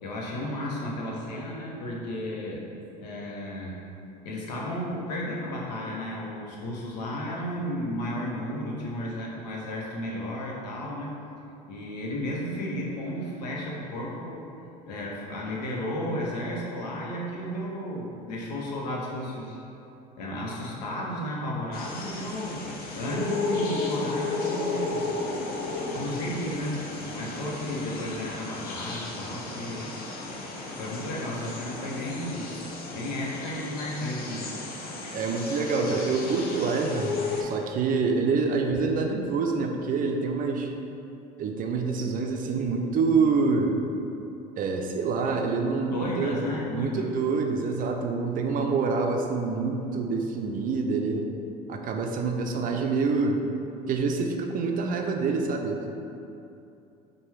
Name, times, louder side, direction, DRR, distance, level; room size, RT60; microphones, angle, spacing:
voice 1, 0.0-2.6 3.0-3.8 4.2-11.1 11.7-14.5 14.8-19.6 20.2-25.1 25.9-29.9 30.8-32.5 32.9-34.6 45.3-45.5 45.8-47.1 48.4-48.5, left 1 dB, 85° left, -3 dB, 0.7 m, -33 dB
sound 1, 21.7-37.4, left 3 dB, 45° left, 0.7 m, -34 dB
voice 2, 35.1-40.7 41.4-43.8 44.6-46.4 46.7-51.3 51.7-53.4 53.9-56.0, right 4 dB, 40° right, 3 dB, 0.4 m, -26 dB
4.5 x 2.2 x 3.2 m, 2.7 s
hypercardioid pair, 75°, 21 cm